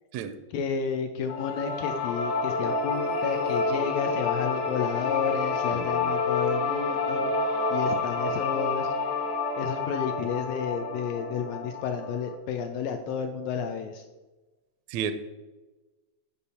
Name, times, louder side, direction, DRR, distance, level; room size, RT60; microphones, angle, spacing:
voice 1, 0.5-8.9 9.2-9.3 9.6-14.0, left 6 dB, 85° left, 6 dB, 1.5 m, -31 dB
sound 1, 1.3-12.4, left 4 dB, 65° left, 1.7 m, -29 dB
voice 2, 5.7-6.1 14.9-15.1, right 8 dB, 80° right, 11 dB, 1.6 m, -32 dB
8.6 x 5.4 x 4.2 m, 1.2 s
omnidirectional pair, 3.5 m